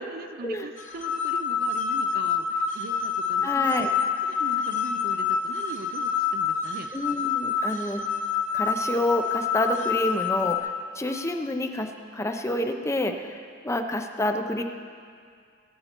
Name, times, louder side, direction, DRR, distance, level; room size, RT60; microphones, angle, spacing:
voice 1, 0.0-3.9 4.2-6.9, right 3 dB, 50° right, 9 dB, 0.6 m, -40 dB
sound 1, 0.8-10.6, left 6 dB, 40° left, 1.3 m, -27 dB
voice 2, 3.4-3.9 6.9-8.0 8.5-13.4 13.6-14.6, left 1 dB, 15° left, 5 dB, 0.7 m, -28 dB
19.0 x 9.2 x 4.5 m, 2.2 s
head